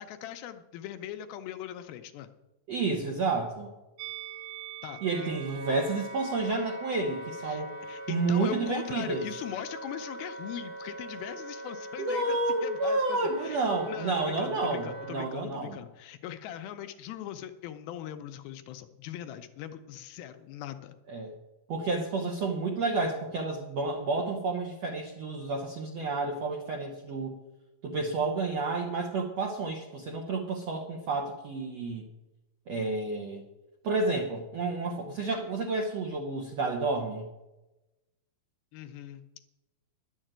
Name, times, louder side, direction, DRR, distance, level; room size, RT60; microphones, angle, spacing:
voice 1, 0.0-2.3 4.8-5.3 7.4-7.6 7.9-21.0 38.7-39.4, left 11 dB, 80° left, 8 dB, 2.4 m, -40 dB
voice 2, 2.7-3.7 5.0-7.7 8.1-9.2 12.0-15.8 21.1-21.3 21.7-27.4 27.8-32.1 32.7-33.4 33.8-37.3, right 3 dB, 70° right, 1 dB, 1.5 m, -30 dB
Musical instrument, 4.0-9.2 9.5-9.7, right 14 dB, 90° right, 1.8 m, -47 dB
Wind instrument woodwind instrument, 5.0-15.3, right 1 dB, 10° right, 0.5 m, -42 dB
11.0 x 7.3 x 8.9 m, 1.0 s
omnidirectional pair, 4.6 m